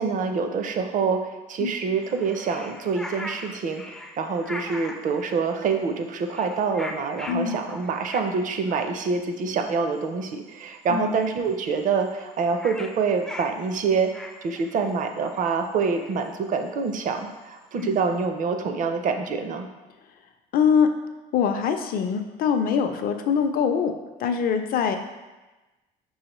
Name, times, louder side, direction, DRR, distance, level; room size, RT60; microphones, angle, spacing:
voice 1, 0.0-3.8 4.2-14.1 14.4-19.7, right 5 dB, 50° right, 6 dB, 0.5 m, -26 dB
sound 1, 2.0-5.3 5.7-6.0 6.2-8.4 8.6-8.9 9.5-9.6 9.7-10.0 10.3-10.6 10.9-11.0 11.1-11.2 11.5-18.2, left 1 dB, 5° left, 0.3 m, -40 dB
voice 2, 7.3-7.6 10.9-11.1 17.8-18.0 20.5-20.9 21.3-23.9 24.2-25.0, left 7 dB, 60° left, 6 dB, 0.5 m, -23 dB
5.5 x 3.1 x 3.0 m, 1.1 s
cardioid pair, 110°, 17 cm